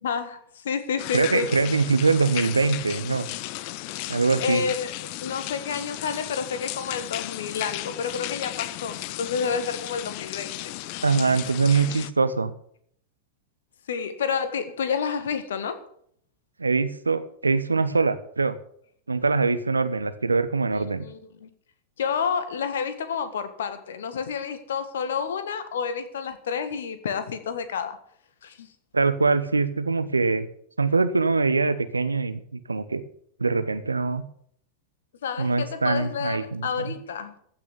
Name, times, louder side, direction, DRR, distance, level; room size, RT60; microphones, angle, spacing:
voice 1, 0.0-1.5 4.4-4.9 5.2-10.6 13.9-15.8 20.7-21.5 22.0-28.0 28.4-28.7 35.2-37.3, left 6 dB, 60° left, 1.6 m, -29 dB
sound 1, 1.0-12.1, left 17 dB, 45° left, 0.6 m, -35 dB
voice 2, 1.1-3.3 4.1-4.6 11.0-12.5 16.6-18.6 19.1-21.1 28.9-30.5 30.8-32.4 32.7-33.0 33.4-34.2 35.4-36.9, right 4 dB, 80° right, 1.0 m, -23 dB
15.0 x 6.2 x 8.3 m
figure-of-eight pair, 90°, 0 cm